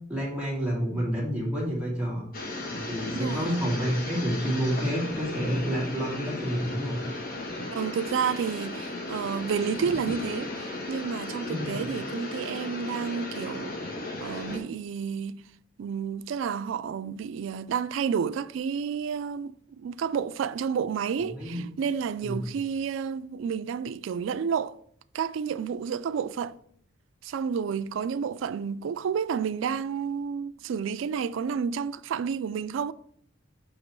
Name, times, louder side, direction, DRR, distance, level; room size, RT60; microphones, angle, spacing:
voice 1, 0.1-2.2 2.7-7.0 11.5-11.8 21.2-21.7 22.2-22.5, equal, 5° right, 2.5 m, -29 dB
sound 1, 2.3-14.6, left 2 dB, 50° left, 1.1 m, -35 dB
voice 2, 3.2-3.5 7.7-13.8 14.2-15.4 15.8-24.7 25.1-26.5 27.2-32.9, right 6 dB, 70° right, 0.3 m, -30 dB
8.2 x 2.9 x 4.5 m
head